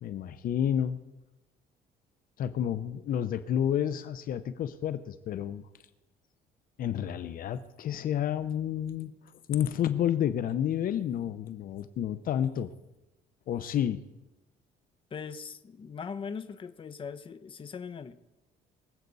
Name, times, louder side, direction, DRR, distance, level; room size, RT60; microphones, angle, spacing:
voice 1, 0.0-1.0 2.4-5.6 6.8-9.1 9.5-12.7 13.5-14.0, left 10 dB, 55° left, 12 dB, 0.7 m, -30 dB
voice 2, 15.1-18.1, left 6 dB, 30° left, 11 dB, 0.8 m, -40 dB
24.0 x 8.1 x 4.1 m, 0.98 s
cardioid pair, 110°, 17 cm